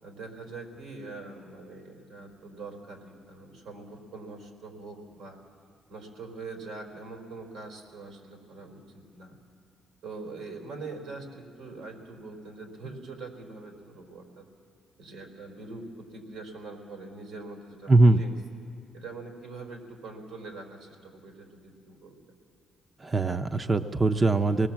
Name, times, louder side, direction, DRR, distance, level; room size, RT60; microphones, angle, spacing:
voice 1, 0.0-5.4 5.9-9.4 10.0-14.5 15.0-18.4 18.9-22.2, right 3 dB, 90° right, 2 dB, 4.2 m, -43 dB
voice 2, 17.9-18.2 23.0-24.7, right 2 dB, 30° right, 7 dB, 0.6 m, -21 dB
25.5 x 19.5 x 7.4 m, 2.5 s
cardioid pair, 90°, 0 cm